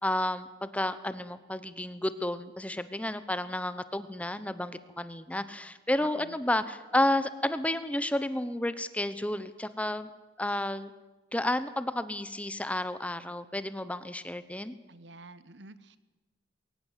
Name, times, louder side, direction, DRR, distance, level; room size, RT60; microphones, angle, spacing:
voice 1, 0.0-10.1 10.4-10.9 11.3-14.7, left 1 dB, 10° left, 14 dB, 0.9 m, -31 dB
voice 2, 6.0-6.4 14.9-16.0, right 3 dB, 75° right, 15 dB, 1.2 m, -48 dB
22.0 x 18.5 x 8.2 m, 1.1 s
head